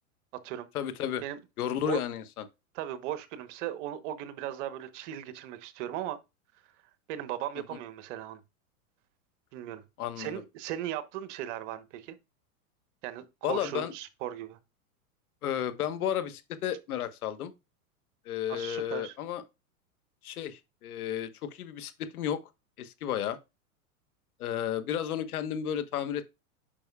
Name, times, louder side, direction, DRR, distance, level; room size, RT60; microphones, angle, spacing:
voice 1, 0.7-1.2 1.6-2.4 10.0-10.4 13.4-13.9 15.4-17.5 18.2-19.4 20.2-22.4 22.8-23.4 24.4-26.2, left 10 dB, 80° left, 1.3 m, -32 dB
voice 2, 2.7-6.2 7.1-8.4 9.5-9.8 10.2-12.2 13.0-14.6 18.5-19.1, right 12 dB, 55° right, 1.1 m, -37 dB
8.7 x 6.0 x 2.3 m
hypercardioid pair, 120°, 44 cm